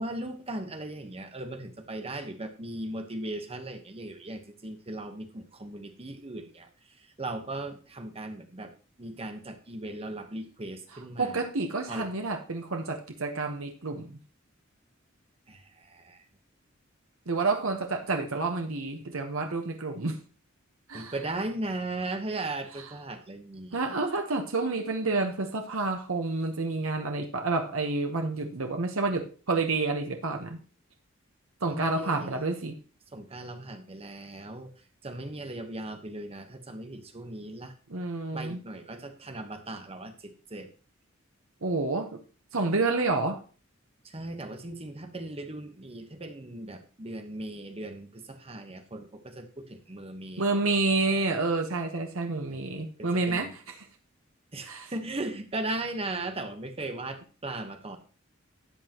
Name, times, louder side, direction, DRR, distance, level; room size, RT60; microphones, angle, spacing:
voice 1, 0.0-8.7 9.0-11.5 11.9-12.1 15.5-16.2 20.9-24.0 31.7-32.4 33.1-34.7 35.0-37.7 38.3-40.7 44.0-50.7 52.5-53.5 54.5-58.0, right 2 dB, 30° right, 7 dB, 1.1 m, -38 dB
voice 2, 11.2-14.2 17.3-20.2 20.9-21.1 23.7-30.6 31.6-32.7 37.9-38.6 41.6-42.1 42.5-43.4 50.4-53.5 54.7-54.9, right 3 dB, 90° right, 4 dB, 1.1 m, -29 dB
12.5 x 8.3 x 3.0 m, 0.38 s
head